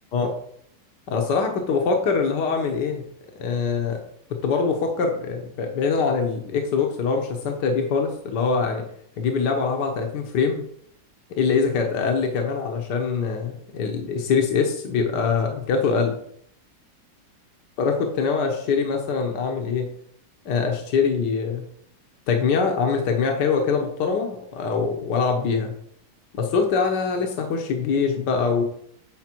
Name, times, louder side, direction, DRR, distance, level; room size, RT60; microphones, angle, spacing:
voice 1, 1.1-3.1 3.4-4.0 4.3-8.8 9.2-10.6 11.4-16.2 17.8-19.9 20.5-21.7 22.3-25.7 26.3-28.6, left 5 dB, 75° left, 2 dB, 1.6 m, -23 dB
9.8 x 5.1 x 4.5 m, 0.67 s
omnidirectional pair, 1.9 m